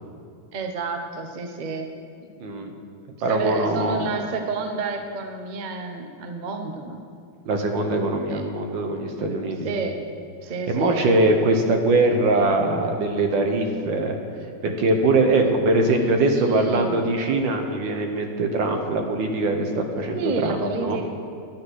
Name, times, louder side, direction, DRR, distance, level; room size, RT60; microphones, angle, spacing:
voice 1, 0.5-1.9 2.2-2.3 3.3-7.1 8.3-8.4 9.6-9.9 10.4-11.0 15.4-15.6 15.9-17.1 20.1-21.1, right 4 dB, 45° right, 5 dB, 0.5 m, -30 dB
voice 2, 2.4-2.7 3.2-4.1 7.5-9.7 10.7-14.2 14.6-21.0, right 2 dB, 75° right, 4 dB, 1.8 m, -22 dB
10.5 x 8.8 x 6.3 m, 2.4 s
omnidirectional pair, 2.1 m